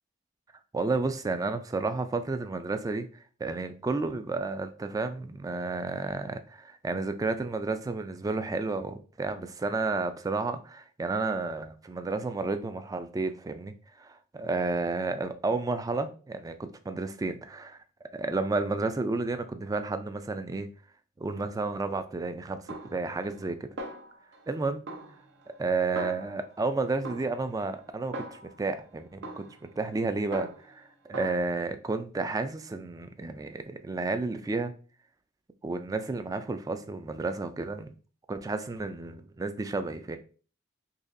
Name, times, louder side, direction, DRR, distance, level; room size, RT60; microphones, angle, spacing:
voice 1, 0.7-3.1 3.4-17.8 18.1-20.7 21.2-23.7 24.5-24.8 25.6-34.7 35.6-37.9 38.3-40.2, right 3 dB, 20° right, 0.3 m, -31 dB
Snare drum, 22.7-23.5 23.8-24.5 24.9-26.6 27.0-28.7 29.2-30.8 31.1-31.4, right 1 dB, 65° right, 0.6 m, -42 dB
4.0 x 2.9 x 2.6 m
head